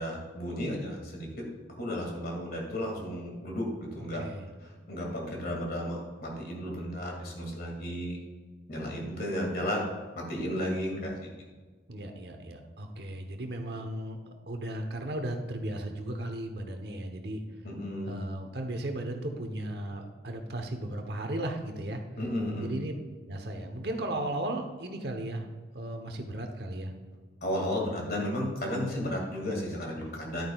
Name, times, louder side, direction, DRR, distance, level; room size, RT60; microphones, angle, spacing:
voice 1, 0.0-1.5 1.8-4.2 4.6-8.2 8.7-9.8 10.1-11.1 17.6-18.2 22.2-22.7 27.4-30.5, equal, 55° left, -1 dB, 2.3 m, -33 dB
voice 2, 11.9-17.4 18.1-22.0 22.6-22.9 23.3-25.5 25.7-26.9, right 1 dB, 60° right, 5 dB, 1.0 m, -35 dB
11.0 x 9.3 x 2.4 m, 1.4 s
head